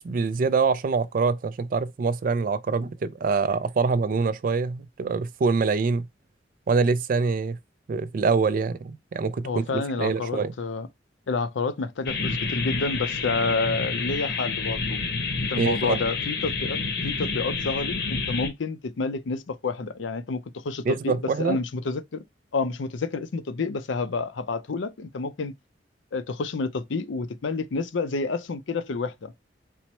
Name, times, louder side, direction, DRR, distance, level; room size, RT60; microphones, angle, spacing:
voice 1, 0.0-6.1 6.7-7.6 7.9-10.5 15.6-16.0 20.9-21.6, right 4 dB, 50° right, 0.3 m, -25 dB
voice 2, 9.4-10.9 11.3-15.0 15.5-16.8 17.0-22.2 22.5-25.5 26.1-29.3, left 4 dB, 90° left, 0.5 m, -29 dB
sound 1, 12.1-18.5, left 4 dB, 60° left, 0.8 m, -29 dB
4.3 x 2.1 x 4.2 m
head